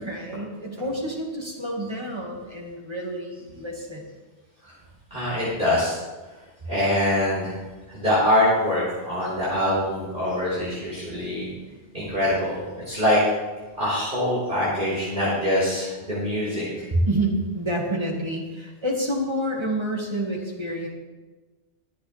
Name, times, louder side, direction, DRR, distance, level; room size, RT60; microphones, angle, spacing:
voice 1, 0.1-4.1 11.3-11.8 16.9-20.9, right 1 dB, 25° right, -1 dB, 2.2 m, -28 dB
voice 2, 5.1-6.0 6.6-7.6 7.9-11.5 11.9-13.2 13.8-16.9, left 1 dB, 50° right, -9 dB, 4.9 m, -24 dB
22.5 x 8.2 x 3.5 m, 1.2 s
omnidirectional pair, 1.1 m